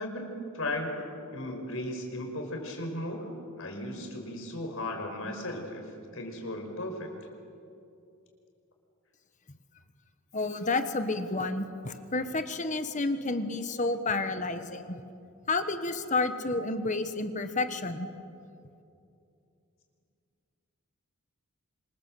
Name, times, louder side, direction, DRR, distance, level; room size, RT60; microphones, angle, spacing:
voice 1, 0.0-3.3 3.6-7.1, left 1 dB, 65° left, 3 dB, 5.3 m, -36 dB
voice 2, 10.3-15.0 15.5-18.1, left 3 dB, 35° left, 8 dB, 1.4 m, -30 dB
27.5 x 26.0 x 7.9 m, 2.6 s
head